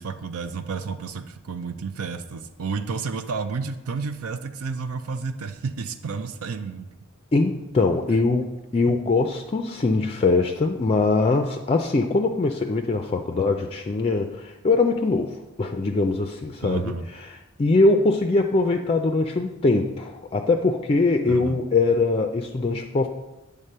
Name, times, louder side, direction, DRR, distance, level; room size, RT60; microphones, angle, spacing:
voice 1, 0.0-6.9 16.6-17.1 21.2-21.6, right 5 dB, 85° right, 9 dB, 0.5 m, -31 dB
voice 2, 7.3-17.3 17.6-23.1, left 3 dB, 25° left, 5 dB, 0.4 m, -22 dB
8.9 x 3.6 x 6.6 m, 1.0 s
head